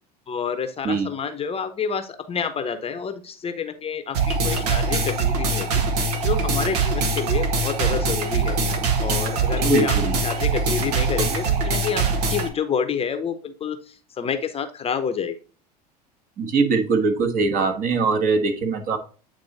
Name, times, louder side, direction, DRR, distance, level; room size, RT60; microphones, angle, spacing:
voice 1, 0.3-5.7 6.2-8.6 9.0-10.0 10.2-15.4, left 6 dB, 30° left, 9 dB, 0.8 m, -28 dB
sound 1, 4.1-12.5, right 3 dB, 70° right, 1.2 m, -23 dB
voice 2, 9.6-10.2 16.4-19.0, right 4 dB, 45° right, 4 dB, 1.4 m, -22 dB
8.7 x 3.0 x 4.0 m, 0.37 s
hypercardioid pair, 80°, 21 cm